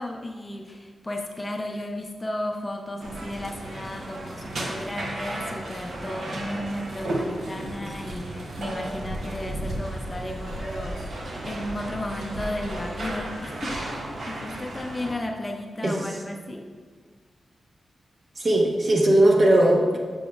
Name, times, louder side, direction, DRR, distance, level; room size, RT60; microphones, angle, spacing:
voice 1, 0.0-11.1 11.4-16.6, left 1 dB, 20° left, 2 dB, 0.5 m, -34 dB
sound 1, 3.0-15.1, right 1 dB, 70° right, 0.9 m, -34 dB
voice 2, 18.4-20.0, right 1 dB, 40° right, 0 dB, 0.9 m, -19 dB
7.2 x 6.8 x 2.4 m, 1.5 s
wide cardioid pair, 145°, 0 cm